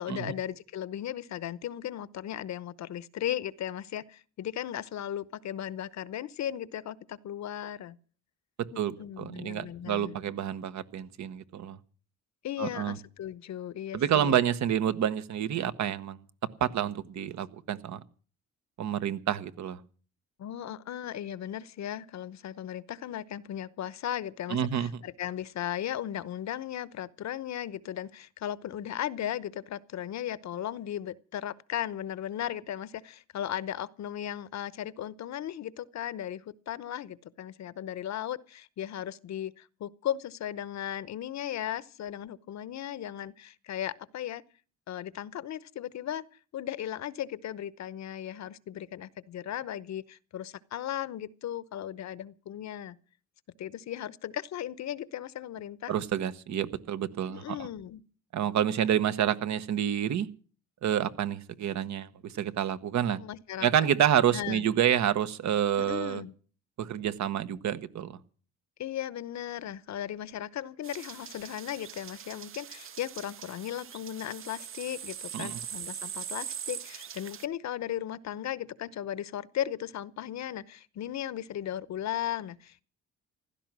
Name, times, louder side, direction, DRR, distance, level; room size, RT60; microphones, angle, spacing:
voice 1, 0.0-8.0 9.0-10.4 12.4-14.4 20.4-44.4 44.9-46.2 46.5-53.0 53.6-55.9 57.3-58.0 63.1-63.7 64.3-64.7 65.8-66.3 68.8-82.8, left 11 dB, 65° left, 0.9 m, -36 dB
voice 2, 8.6-11.8 12.6-13.0 13.9-16.2 16.6-18.0 18.8-19.8 24.5-24.9 55.9-57.6 58.3-60.3 60.8-63.2 63.6-66.2 66.8-68.2 75.3-75.6, right 10 dB, 70° right, 1.2 m, -28 dB
sound 1, 70.8-77.5, right 9 dB, 45° right, 0.7 m, -41 dB
15.5 x 12.5 x 6.1 m
cardioid pair, 90°, 30 cm